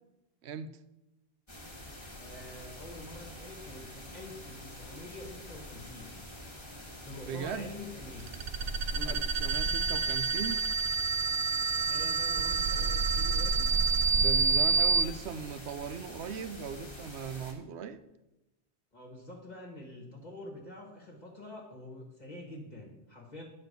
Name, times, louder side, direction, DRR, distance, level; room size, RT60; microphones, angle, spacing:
sound 1, 1.5-17.5, left 1 dB, 25° left, 1.5 m, -47 dB
voice 1, 2.2-6.2 7.0-8.2 8.9-9.2 11.8-13.7 18.9-23.4, left 1 dB, 40° left, -1 dB, 1.4 m, -46 dB
voice 2, 7.3-7.7 9.0-10.6 14.2-18.0, right 7 dB, 85° right, 12 dB, 0.9 m, -38 dB
sound 2, 8.2-15.0, right 4 dB, 55° right, 0.4 m, -28 dB
9.6 x 4.3 x 6.6 m, 0.95 s
omnidirectional pair, 1.1 m